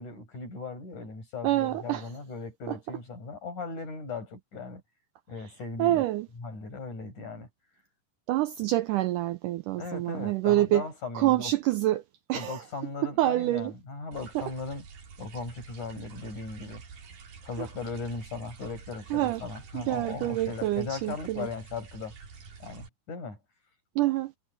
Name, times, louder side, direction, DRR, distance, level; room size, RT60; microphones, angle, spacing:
voice 1, 0.0-4.8 5.3-6.0 6.4-7.5 9.8-11.5 12.3-14.8 15.2-16.8 17.4-22.1 22.6-23.4, left 4 dB, 50° left, 9.1 m, -38 dB
voice 2, 1.4-2.1 2.7-2.8 5.8-6.3 8.3-10.9 11.1-12.0 12.3-12.6 13.0-13.7 14.4-14.5 17.6-17.7 19.1-19.4 19.7-21.5 24.0-24.3, right 15 dB, 90° right, 1.8 m, -26 dB
sound 1, 14.1-22.9, right 5 dB, 65° right, 5.1 m, -48 dB
omnidirectional pair, 4.5 m